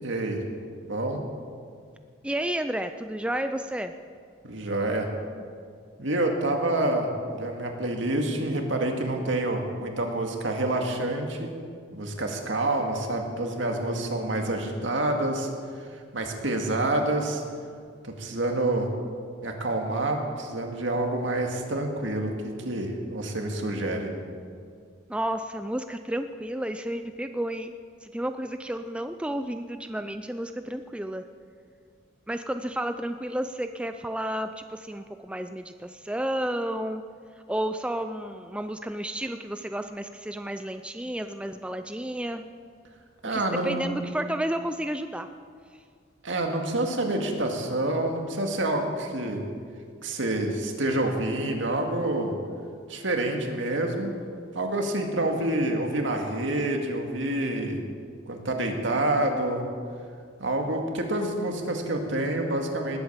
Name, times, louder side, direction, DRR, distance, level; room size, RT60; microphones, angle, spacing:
voice 1, 0.0-0.4 0.8-1.2 4.4-5.1 6.0-11.5 11.9-15.5 16.1-17.4 18.0-18.9 19.4-24.1 43.2-44.0 46.2-49.4 50.0-52.3 52.9-54.1 54.5-57.8 58.3-59.7 60.4-63.0, right 1 dB, 70° right, 3 dB, 2.0 m, -27 dB
voice 2, 2.2-3.9 25.1-27.7 28.0-31.3 32.3-37.0 37.5-42.4 43.3-45.3, right 1 dB, 5° right, 8 dB, 0.4 m, -31 dB
19.5 x 8.6 x 7.3 m, 2.1 s
head